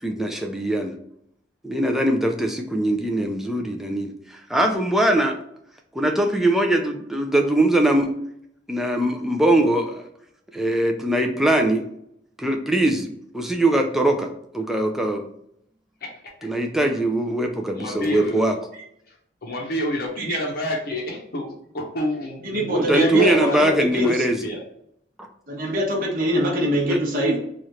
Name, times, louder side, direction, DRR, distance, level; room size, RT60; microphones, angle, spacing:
voice 1, 0.0-0.9 1.6-5.4 5.9-8.1 8.7-10.0 10.5-11.9 12.4-14.3 14.5-15.3 16.4-18.5 22.8-24.4 25.2-25.3 26.9-27.0, right 1 dB, ahead, 3 dB, 0.4 m, -21 dB
voice 2, 16.0-16.3 17.7-18.6 19.1-19.2 19.4-24.6, left 1 dB, 50° left, -1 dB, 0.7 m, -29 dB
voice 3, 22.4-24.2 25.5-27.4, equal, 50° right, -1 dB, 0.9 m, -23 dB
3.2 x 2.4 x 4.1 m, 0.73 s
head